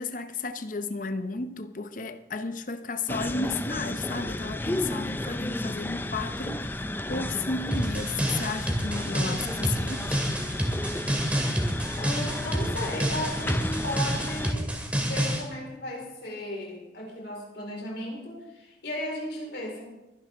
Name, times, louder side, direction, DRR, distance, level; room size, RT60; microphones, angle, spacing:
voice 1, 0.0-10.2, left 3 dB, 45° left, 0.8 m, -33 dB
sound 1, 3.1-14.5, left 1 dB, 10° left, 0.5 m, -33 dB
sound 2, 7.7-15.4, equal, 10° right, 2.3 m, -28 dB
voice 2, 12.0-14.7 14.9-19.8, left 1 dB, 70° left, 4.5 m, -35 dB
24.0 x 10.5 x 3.6 m
head